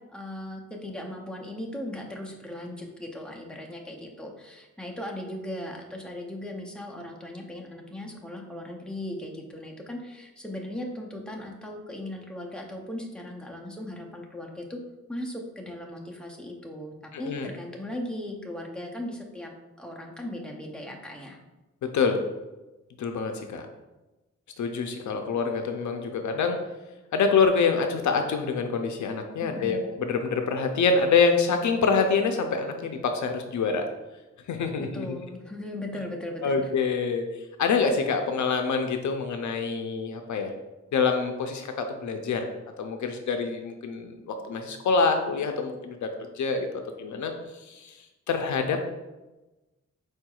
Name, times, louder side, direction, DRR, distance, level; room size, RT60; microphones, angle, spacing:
voice 1, 0.0-14.8 15.1-19.5 19.8-21.4 29.4-29.9 34.8-36.7, left 1 dB, 5° left, 0 dB, 0.5 m, -38 dB
voice 2, 17.1-17.5 21.8-22.2 23.0-23.6 24.6-26.6 27.1-33.8 34.5-35.2 36.4-37.2 37.6-40.5 40.9-42.4 42.8-46.1 46.4-46.7 47.0-47.3 47.7-47.9 48.3-48.8, left 5 dB, 75° left, 5 dB, 0.5 m, -26 dB
4.7 x 4.4 x 2.3 m, 1.1 s
wide cardioid pair, 165°, 30 cm